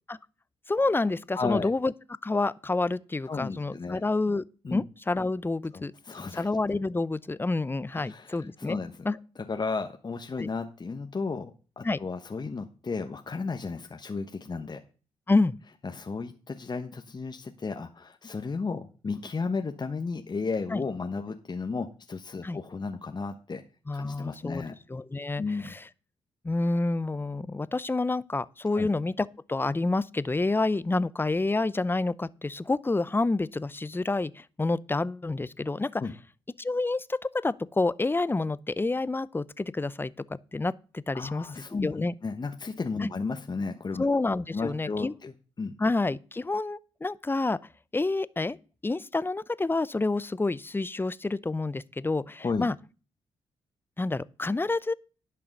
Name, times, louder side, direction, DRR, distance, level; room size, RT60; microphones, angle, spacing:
voice 1, 0.7-1.9 2.2-4.4 4.7-5.9 6.3-8.8 9.0-9.2 10.4-10.5 11.8-12.0 15.3-15.5 20.7-20.8 22.4-22.6 23.9-24.6 24.9-25.8 26.4-36.0 36.6-42.1 43.0-43.1 44.0-45.1 45.8-47.6 47.9-48.6 48.8-52.7 54.0-54.9, left 3 dB, 15° left, 0.6 m, -28 dB
voice 2, 1.3-1.7 3.3-4.0 4.6-4.8 5.7-6.5 7.9-9.1 9.4-14.8 15.8-23.6 23.9-24.7 25.4-25.7 28.7-28.9 36.0-36.1 41.1-44.1 44.5-45.7 52.4-52.7, left 4 dB, 35° left, 1.0 m, -34 dB
11.0 x 5.8 x 6.5 m
supercardioid pair, 50°, 13 cm